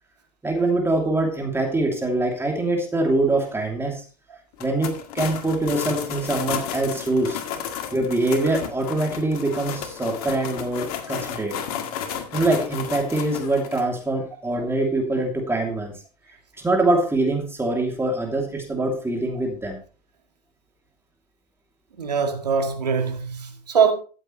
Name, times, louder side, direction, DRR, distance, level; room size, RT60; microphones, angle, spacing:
voice 1, 0.4-4.0 4.6-7.4 7.9-11.6 12.3-15.9 16.5-19.8, right 2 dB, 10° right, 2.8 m, -24 dB
sound 1, 4.5-13.8, left 9 dB, 65° left, 2.0 m, -33 dB
voice 2, 22.0-23.9, right 6 dB, 90° right, 1.9 m, -22 dB
14.0 x 8.0 x 3.1 m
hypercardioid pair, 85°, 20 cm